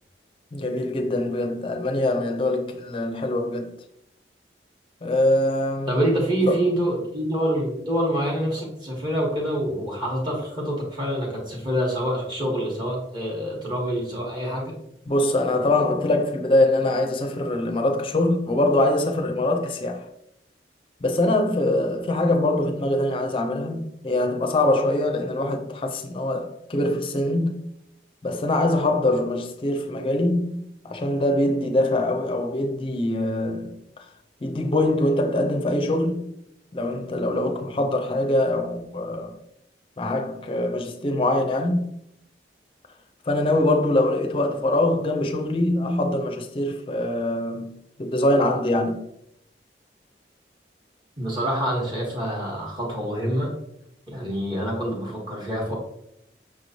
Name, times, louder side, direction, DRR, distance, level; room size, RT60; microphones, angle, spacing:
voice 1, 0.5-3.7 5.0-6.0 6.4-6.7 15.1-20.0 21.0-27.6 28.2-33.8 34.4-36.3 36.7-39.3 40.0-41.8 43.3-49.1, left 1 dB, 30° left, 0.5 m, -23 dB
voice 2, 5.9-14.8 51.2-53.5 54.1-55.7, right 1 dB, 25° right, 1.1 m, -26 dB
5.9 x 3.0 x 2.6 m
head